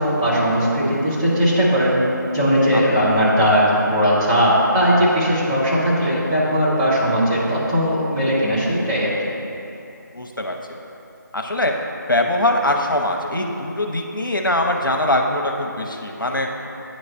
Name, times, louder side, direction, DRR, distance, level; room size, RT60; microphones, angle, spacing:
voice 1, 0.0-2.0 2.3-9.1, equal, 15° right, -10 dB, 0.8 m, -18 dB
voice 2, 2.7-3.1 10.1-10.8 11.3-11.7 12.1-16.5, left 1 dB, 80° left, 2 dB, 0.8 m, -22 dB
8.6 x 3.2 x 5.3 m, 2.9 s
figure-of-eight pair, 160°, 11 cm